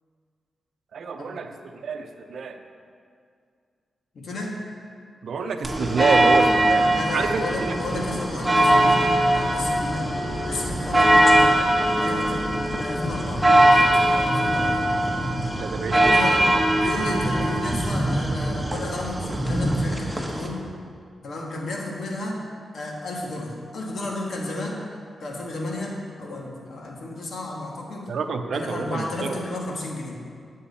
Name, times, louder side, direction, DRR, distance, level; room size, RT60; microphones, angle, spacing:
voice 1, 0.9-1.5 1.8-2.6 5.2-6.9 7.1-7.4 15.6-16.4 28.1-29.4, right 5 dB, 75° right, 6 dB, 0.6 m, -27 dB
voice 2, 4.1-4.6 6.9-10.1 10.5-11.6 11.9-15.1 15.9-16.5 16.8-20.6 21.2-22.4 22.7-24.8 25.2-28.1 28.5-30.2, left 2 dB, 70° left, -1 dB, 1.6 m, -32 dB
sound 1, 5.6-20.5, right 1 dB, 10° right, 1.3 m, -21 dB
10.0 x 7.4 x 4.2 m, 2.2 s
cardioid pair, 60°, 0 cm